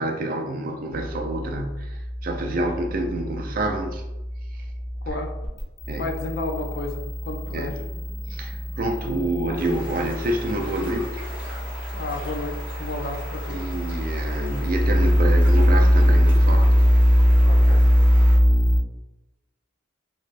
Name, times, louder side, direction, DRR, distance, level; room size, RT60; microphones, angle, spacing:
voice 1, 0.0-4.0 4.5-4.6 5.9-6.1 7.5-7.7 8.3-11.2 13.5-16.7, right 1 dB, 45° right, 4 dB, 0.4 m, -28 dB
sound 1, 0.9-18.8, equal, 35° left, 0.8 m, -22 dB
voice 2, 6.0-7.8 9.5-9.6 11.9-13.7 17.3-17.9, left 2 dB, 50° left, 4 dB, 0.4 m, -32 dB
sound 2, 9.5-18.4, equal, 10° right, 0.9 m, -40 dB
3.2 x 3.0 x 2.5 m, 0.99 s
head